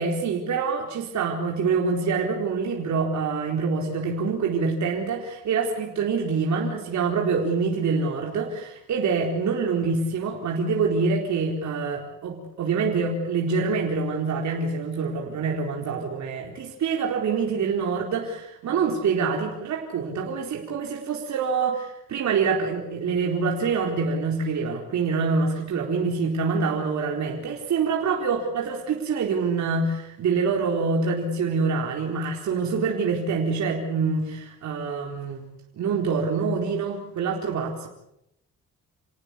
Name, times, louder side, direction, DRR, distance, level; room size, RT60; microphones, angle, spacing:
voice 1, 0.0-35.4 35.8-37.9, right 5 dB, 65° right, 0 dB, 4.4 m, -26 dB
29.0 x 18.5 x 8.5 m, 0.83 s
cardioid pair, 90°, 30 cm